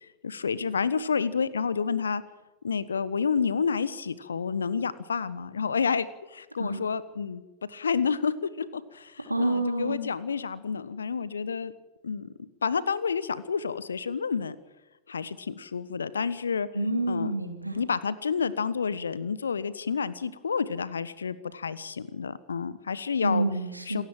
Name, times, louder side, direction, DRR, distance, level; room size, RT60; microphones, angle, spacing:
voice 1, 0.2-2.2 2.6-7.4 7.7-11.7 12.0-14.5 15.1-16.7 17.1-17.3 17.7-23.5 23.9-24.0, left 6 dB, 70° left, 17 dB, 1.2 m, -29 dB
voice 2, 9.3-10.1 16.7-17.8 23.2-24.0, right 2 dB, 85° right, 4 dB, 3.1 m, -28 dB
28.0 x 15.5 x 7.7 m, 1.1 s
figure-of-eight pair, 90°, 0 cm